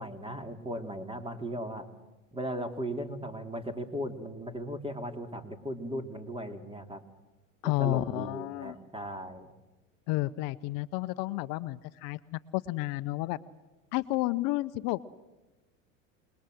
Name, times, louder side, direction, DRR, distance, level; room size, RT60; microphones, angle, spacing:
voice 1, 0.0-1.9 2.3-7.0 7.6-9.5, equal, 15° right, 8 dB, 2.8 m, -37 dB
voice 2, 7.6-8.7 10.1-13.4 13.9-15.0, left 18 dB, 60° left, 14 dB, 0.8 m, -31 dB
27.5 x 20.5 x 7.7 m, 1.1 s
hypercardioid pair, 90°, 39 cm